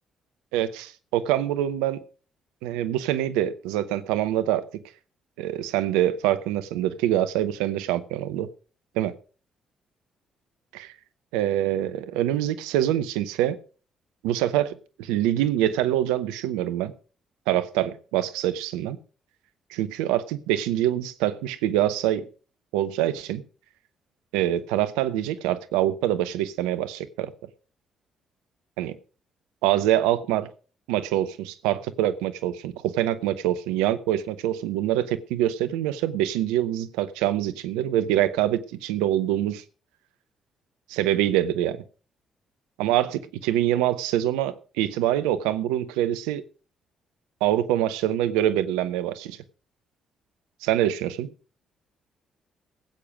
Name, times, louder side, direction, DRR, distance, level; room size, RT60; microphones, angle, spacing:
voice 1, 0.5-2.0 2.6-4.6 5.4-8.5 9.0-9.1 10.7-10.9 11.3-13.6 14.2-16.9 17.5-19.0 19.7-22.3 22.7-23.4 24.3-27.3 28.8-29.0 29.6-30.5 30.9-39.6 40.9-41.8 42.8-46.4 47.4-49.4 50.6-51.3, right 12 dB, 75° right, 0.7 m, -25 dB
16.0 x 8.7 x 5.0 m
hypercardioid pair, 45°, 0 cm